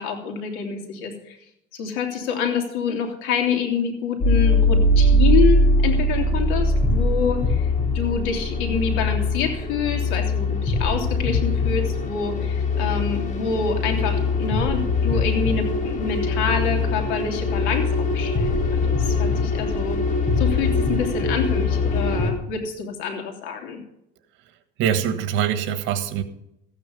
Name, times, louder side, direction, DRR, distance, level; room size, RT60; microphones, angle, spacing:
voice 1, 0.0-1.4 1.7-20.0 20.4-23.8, left 6 dB, 90° left, 3 dB, 3.1 m, -27 dB
sound 1, 4.2-22.3, left 2 dB, 40° left, 2.3 m, -21 dB
voice 2, 24.8-26.2, right 9 dB, 75° right, 10 dB, 1.5 m, -23 dB
14.5 x 9.1 x 5.4 m, 0.78 s
cardioid pair, 125°, 20 cm